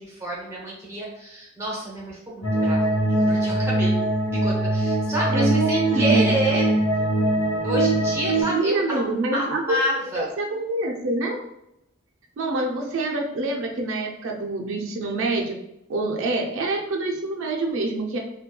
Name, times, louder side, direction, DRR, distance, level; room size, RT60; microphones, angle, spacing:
voice 1, 0.0-3.9 4.3-6.7 7.6-10.3, right 1 dB, 15° right, -4 dB, 0.6 m, -29 dB
sound 1, 2.4-8.4, right 1 dB, 40° left, 1.1 m, -22 dB
voice 2, 5.3-6.3 8.5-11.4 12.4-15.6 15.9-18.2, right 2 dB, 70° right, 1 dB, 0.4 m, -26 dB
2.8 x 2.2 x 2.2 m, 0.83 s
head